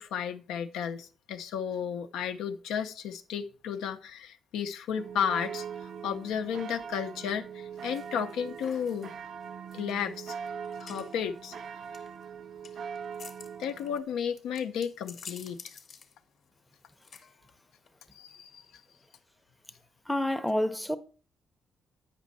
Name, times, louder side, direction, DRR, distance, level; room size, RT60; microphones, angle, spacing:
voice 1, 0.0-5.7 6.0-9.1 9.7-10.4 10.8-11.5 13.6-15.6 18.1-18.6, left 8 dB, 85° left, 0.5 m, -33 dB
sound 1, 5.0-14.0, right 7 dB, 60° right, 0.4 m, -41 dB
sound 2, 7.8-19.1, left 5 dB, 55° left, 0.8 m, -52 dB
voice 2, 20.1-21.0, left 1 dB, 5° left, 0.6 m, -28 dB
8.2 x 5.2 x 4.1 m
cardioid pair, 90°, 0 cm